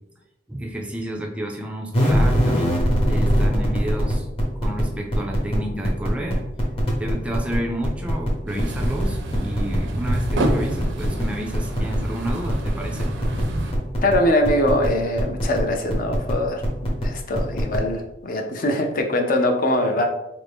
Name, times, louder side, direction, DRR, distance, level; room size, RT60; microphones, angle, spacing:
voice 1, 0.5-2.8 3.1-4.3 4.6-6.5 7.0-13.1, right 1 dB, 5° right, 1 dB, 0.3 m, -31 dB
sound 1, 1.9-4.8 5.1-5.6 5.8-7.6 7.8-8.3 8.6-9.0 9.3-9.8 10.1-10.5 10.8-11.2 11.5-12.0 12.2-12.7 13.0-13.4 13.7-14.1 14.4-14.9 15.2-15.6 15.9-16.3 16.6-17.1 17.3-17.8, equal, 30° left, 0.9 m, -22 dB
sound 2, 8.5-13.7, right 1 dB, 75° right, 0.5 m, -28 dB
voice 2, 14.0-20.0, left 1 dB, 50° left, 3 dB, 0.5 m, -22 dB
3.4 x 2.6 x 3.4 m, 0.91 s
head